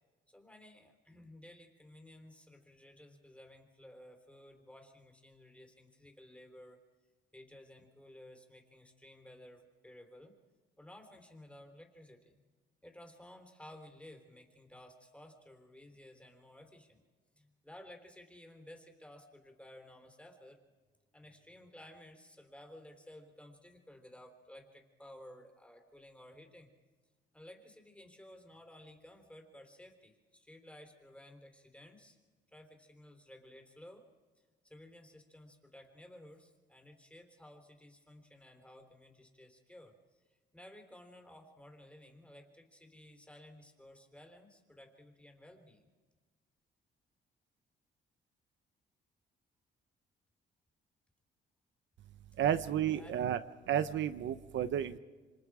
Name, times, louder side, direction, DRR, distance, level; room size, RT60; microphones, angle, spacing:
voice 1, 0.3-6.8 7.3-10.3 10.8-12.3 12.8-17.0 17.3-20.6 21.1-26.7 27.3-32.2 32.5-34.0 34.4-39.9 40.5-45.9 52.7-53.1, left 1 dB, 5° left, 4 dB, 3.7 m, -55 dB
voice 2, 52.4-53.4 53.7-55.0, right 10 dB, 70° right, 11 dB, 0.8 m, -32 dB
27.5 x 25.5 x 4.9 m, 1.4 s
cardioid pair, 90°, 20 cm